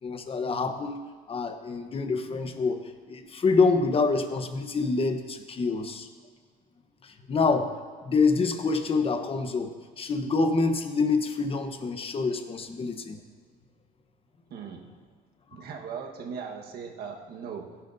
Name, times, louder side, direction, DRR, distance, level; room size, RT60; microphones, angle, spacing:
voice 1, 0.0-1.0 1.3-6.1 7.0-13.2, left 4 dB, 35° left, 7 dB, 1.1 m, -26 dB
voice 2, 14.5-15.0 15.5-17.8, right 6 dB, 70° right, 2 dB, 1.5 m, -39 dB
17.5 x 10.5 x 2.7 m, 1.5 s
cardioid pair, 110°, 17 cm